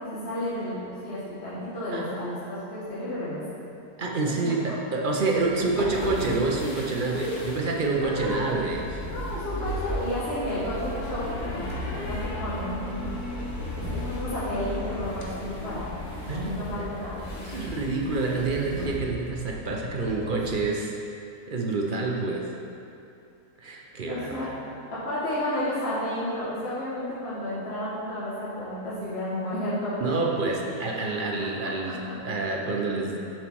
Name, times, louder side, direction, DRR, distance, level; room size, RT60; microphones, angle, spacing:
voice 1, 0.0-3.4 4.4-4.5 7.1-7.4 8.0-8.3 9.1-11.7 12.0-13.1 13.7-15.9 16.3-17.4 24.1-24.5 25.0-30.2 31.4-31.5, left 1 dB, 40° left, -11 dB, 1.9 m, -32 dB
voice 2, 4.0-8.8 16.3-16.9 17.4-20.9 21.5-22.5 23.6-24.5 30.0-33.2, right 3 dB, 45° right, -1 dB, 0.7 m, -28 dB
sound 1, 5.1-18.9, left 1 dB, 75° left, 1.7 m, -36 dB
sound 2, 8.0-20.6, left 2 dB, 20° left, 0.5 m, -41 dB
7.4 x 5.6 x 4.6 m, 2.6 s
omnidirectional pair, 1.6 m